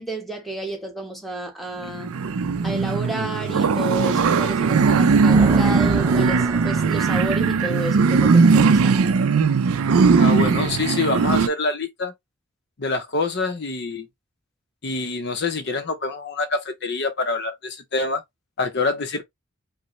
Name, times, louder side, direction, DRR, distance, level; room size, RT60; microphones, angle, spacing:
voice 1, 0.0-2.1 2.6-9.0, right 1 dB, ahead, 1.0 m, -31 dB
sound 1, 1.8-11.5, right 5 dB, 80° right, 0.5 m, -18 dB
sound 2, 4.9-7.4, right 1 dB, 20° right, 0.6 m, -31 dB
voice 2, 10.2-12.1 12.8-14.1 14.8-18.2 18.6-19.2, left 3 dB, 50° left, 0.6 m, -25 dB
5.2 x 2.0 x 3.0 m
head